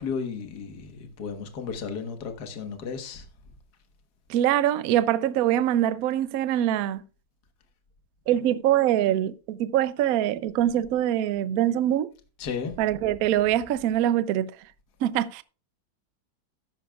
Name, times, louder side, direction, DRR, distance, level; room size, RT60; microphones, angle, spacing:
voice 1, 0.0-3.3 12.4-12.8, left 5 dB, 55° left, 1.8 m, -34 dB
voice 2, 4.3-7.0 8.3-12.1 12.8-14.5 15.0-15.4, right 12 dB, 80° right, 0.7 m, -24 dB
13.5 x 10.5 x 2.3 m
omnidirectional pair, 2.2 m